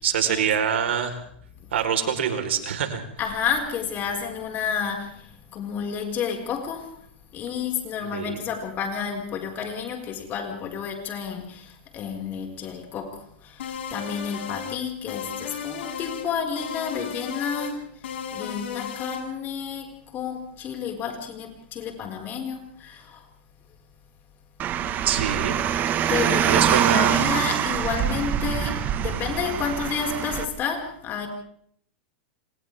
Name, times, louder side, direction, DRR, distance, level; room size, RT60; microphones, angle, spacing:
voice 1, 0.0-1.2 1.7-3.0 8.1-8.4 25.0-25.6 25.9-26.1 26.4-27.2, right 8 dB, 85° right, 6 dB, 4.2 m, -25 dB
voice 2, 3.2-7.0 7.3-17.9 18.3-23.2 26.1-31.3, left 7 dB, 30° left, 3 dB, 5.1 m, -31 dB
sound 1, 13.6-14.8 15.1-16.3 16.6-17.7 18.0-19.2, left 7 dB, 80° left, 6.4 m, -34 dB
Car, 24.6-30.4, right 9 dB, 30° right, 1.5 m, -24 dB
29.5 x 26.0 x 3.6 m, 0.65 s
hypercardioid pair, 135°, 6 cm